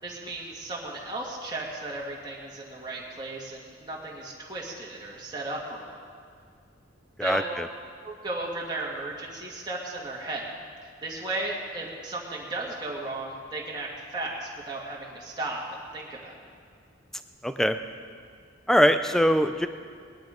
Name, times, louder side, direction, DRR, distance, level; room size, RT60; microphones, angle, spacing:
voice 1, 0.0-6.0 7.2-7.5 8.0-10.5 11.0-15.6 15.9-16.5, right 2 dB, 20° right, -4 dB, 2.0 m, -35 dB
voice 2, 7.2-7.7 17.4-17.8 18.7-19.7, equal, ahead, 9 dB, 0.5 m, -22 dB
19.5 x 11.0 x 5.1 m, 2.1 s
head